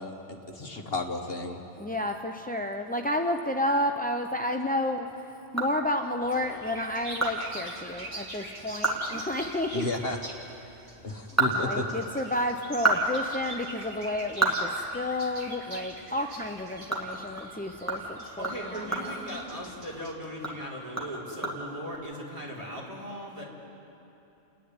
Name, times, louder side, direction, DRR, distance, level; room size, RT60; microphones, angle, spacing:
voice 1, 0.0-1.6 9.7-10.2 11.0-11.8, left 2 dB, 55° left, 3 dB, 1.4 m, -33 dB
voice 2, 1.8-5.1 5.5-9.9 11.3-19.1, left 1 dB, 10° left, 4 dB, 0.4 m, -31 dB
sound 1, 5.3-6.3 6.7-6.8 7.2-7.3 7.7-7.8 8.2-8.3 8.7-9.1 9.4-9.5 11.0-12.3 12.6-15.5 15.9-16.0 16.4-20.0 20.3-22.0, right 2 dB, 10° right, 2.2 m, -31 dB
sound 2, 6.2-20.1, right 1 dB, 45° right, 2.4 m, -44 dB
voice 3, 18.4-23.4, equal, 30° right, -4 dB, 4.0 m, -38 dB
30.0 x 10.0 x 9.7 m, 3.0 s
omnidirectional pair, 1.2 m